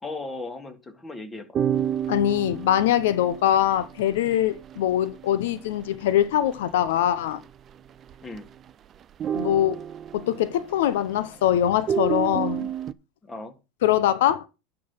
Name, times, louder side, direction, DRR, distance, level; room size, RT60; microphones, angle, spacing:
voice 1, 0.0-1.5 8.2-8.5 13.2-13.5, left 2 dB, 15° left, 1.9 m, -36 dB
sound 1, 1.5-6.6 6.9-7.0 7.3-7.7 8.0-8.7 9.0-11.3 11.8-12.9, right 9 dB, 30° right, 0.5 m, -30 dB
voice 2, 2.1-7.4 9.3-9.8 10.1-12.7 13.8-14.5, left 11 dB, 80° left, 0.7 m, -23 dB
10.5 x 3.9 x 7.1 m
supercardioid pair, 125°, 0 cm